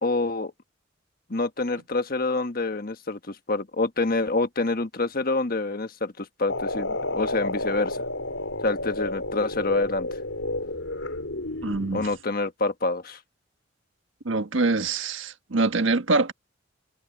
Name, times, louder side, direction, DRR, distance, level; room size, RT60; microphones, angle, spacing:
voice 1, 0.0-0.5 1.3-8.0 8.6-10.1 11.9-13.2, left 3 dB, 50° left, 1.4 m, -27 dB
sound 1, 6.5-12.2, left 2 dB, 90° left, 5.2 m, -31 dB
voice 2, 11.6-12.1 14.2-16.3, right 3 dB, 85° right, 1.4 m, -24 dB
head